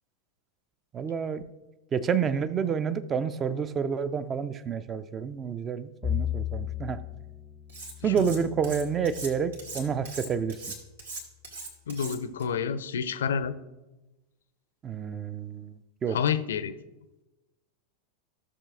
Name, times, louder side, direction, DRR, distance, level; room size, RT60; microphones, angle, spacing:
voice 1, 0.9-1.4 1.9-7.0 8.0-10.6 14.8-16.2, right 7 dB, 25° right, 14 dB, 0.5 m, -29 dB
Bowed string instrument, 6.0-10.4, left 10 dB, 20° left, 0.6 m, -36 dB
Cutlery silverware, 7.7-8.4 8.6-12.4, right 3 dB, 70° right, 2.4 m, -40 dB
voice 2, 11.9-13.6 16.1-16.8, left 7 dB, 65° left, 14 dB, 0.6 m, -29 dB
16.0 x 6.8 x 2.5 m, 1.1 s
figure-of-eight pair, 90°, 0 cm